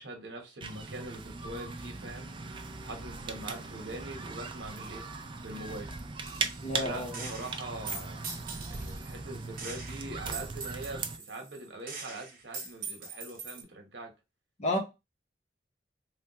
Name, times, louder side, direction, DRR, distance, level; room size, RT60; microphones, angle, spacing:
voice 1, 0.0-2.3 2.8-5.0 5.4-5.9 6.7-8.3 8.7-14.1, right 2 dB, 80° right, 1.0 m, -43 dB
sound 1, 0.6-11.2, right 4 dB, 30° right, 0.4 m, -39 dB
Gunshot gunfire, 6.2-6.8 7.1-9.1 9.6-13.6, right 4 dB, 55° right, 0.9 m, -42 dB
voice 2, 6.6-7.3 14.6-14.8, left 1 dB, 40° left, 0.8 m, -31 dB
3.3 x 2.2 x 2.8 m
head